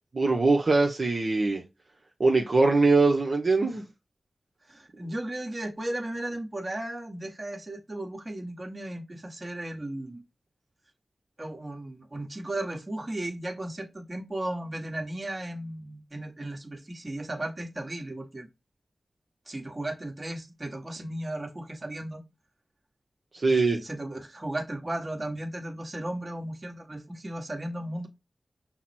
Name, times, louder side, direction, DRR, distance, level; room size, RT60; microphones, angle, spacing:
voice 1, 0.1-1.6 2.2-3.8 23.3-23.8, right 3 dB, 60° right, 0.9 m, -22 dB
voice 2, 4.7-10.2 11.4-18.5 19.5-22.2 23.5-28.1, right 1 dB, 40° right, 1.4 m, -35 dB
5.8 x 2.1 x 4.3 m
cardioid pair, 45°, 0 cm